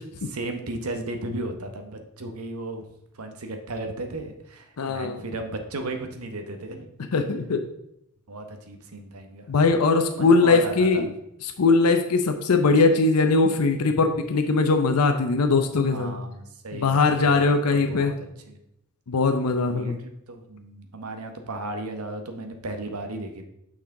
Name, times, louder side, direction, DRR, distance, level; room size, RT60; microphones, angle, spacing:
voice 1, 0.3-2.8 3.1-6.9 8.3-9.5 10.1-11.0 15.9-18.1 18.5-18.6 19.7-23.5, right 2 dB, 75° right, 6 dB, 1.0 m, -35 dB
voice 2, 4.8-5.2 7.1-7.6 9.5-11.1 11.6-16.1 16.7-18.1 19.1-20.0, left 3 dB, 85° left, 6 dB, 0.6 m, -20 dB
6.3 x 5.8 x 3.7 m, 0.80 s
head